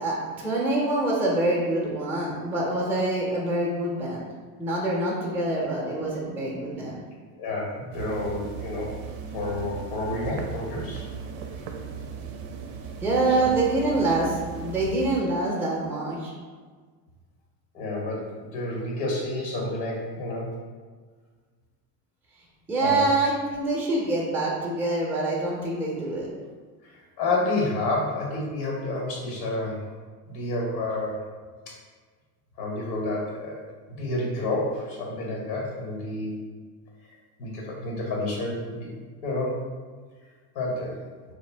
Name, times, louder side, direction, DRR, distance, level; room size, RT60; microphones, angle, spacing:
voice 1, 0.0-4.2 4.6-7.0 13.0-16.3 22.7-26.3, right 2 dB, 5° right, -4 dB, 0.5 m, -25 dB
voice 2, 7.4-9.0 9.3-11.1 13.4-13.5 17.7-20.5 22.8-23.1 26.8-29.9 30.3-31.2 31.7-31.8 32.6-33.6 34.0-36.4 37.4-38.9 39.2-39.6 40.5-41.0, left 2 dB, 75° left, -2 dB, 1.1 m, -29 dB
sound 1, 7.9-15.2, right 6 dB, 65° right, 0.5 m, -37 dB
2.4 x 2.1 x 3.3 m, 1.5 s
supercardioid pair, 95°, 48 cm